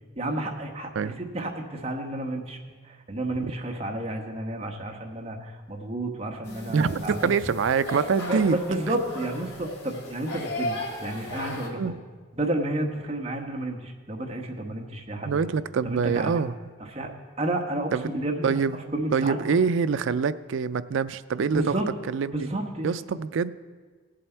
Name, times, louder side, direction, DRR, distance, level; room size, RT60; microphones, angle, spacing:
voice 1, 0.1-2.6 2.8-7.3 8.3-11.9 12.3-15.4 15.8-16.4 16.9-17.1 17.4-18.6 18.9-19.6 21.5-21.9 22.3-22.9, right 1 dB, 30° right, 2 dB, 1.1 m, -31 dB
sound 1, 6.4-11.7, left 1 dB, 90° left, 2.8 m, -35 dB
voice 2, 6.7-8.6 11.8-11.9 15.3-16.5 17.9-18.1 18.4-21.8 22.1-22.4 22.8-23.5, right 5 dB, 60° right, 15 dB, 0.4 m, -25 dB
17.5 x 7.6 x 4.5 m, 1.5 s
head